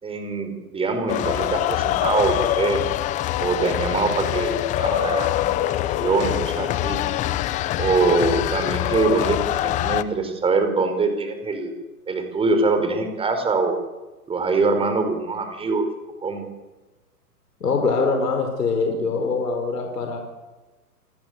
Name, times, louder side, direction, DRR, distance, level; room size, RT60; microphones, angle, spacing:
voice 1, 0.0-2.8 3.4-7.0 7.8-11.7 12.1-13.8 14.3-15.9 16.2-16.4, right 3 dB, 10° right, 7 dB, 4.9 m, -23 dB
sound 1, 1.1-10.0, left 14 dB, 15° left, 0.8 m, -24 dB
voice 2, 17.6-20.2, left 4 dB, 80° left, 4 dB, 5.0 m, -23 dB
29.5 x 20.0 x 8.2 m, 1.2 s
hypercardioid pair, 135°, 47 cm